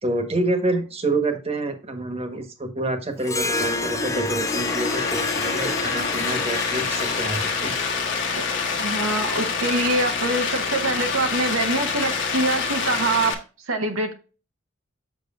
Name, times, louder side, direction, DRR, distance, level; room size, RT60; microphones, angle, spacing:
voice 1, 0.0-7.7, right 2 dB, 30° right, 6 dB, 1.4 m, -27 dB
Harp, 3.2-8.9, left 2 dB, 15° left, 0.5 m, -29 dB
sound 1, 3.4-13.3, left 5 dB, 60° left, 1.3 m, -27 dB
voice 2, 8.8-13.4 13.7-14.1, right 2 dB, 80° right, 4 dB, 1.1 m, -24 dB
7.5 x 6.2 x 2.5 m, 0.34 s
head